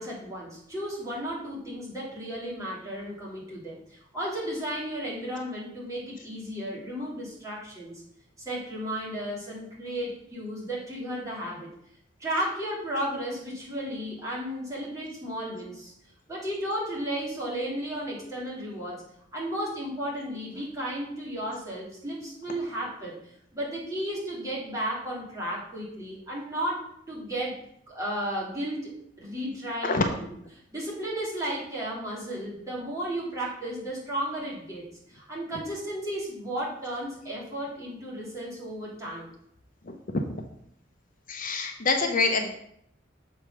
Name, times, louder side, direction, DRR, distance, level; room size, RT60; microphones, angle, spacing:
voice 1, 0.0-3.8 4.1-8.0 8.4-11.7 12.2-15.9 16.3-19.0 19.3-27.6 27.9-28.9 29.2-30.3 30.7-39.3, right 1 dB, 15° right, -7 dB, 3.2 m, -34 dB
voice 2, 29.8-30.2 39.8-40.3 41.3-42.6, left 3 dB, 45° left, 4 dB, 0.7 m, -26 dB
6.9 x 5.1 x 5.7 m, 0.72 s
head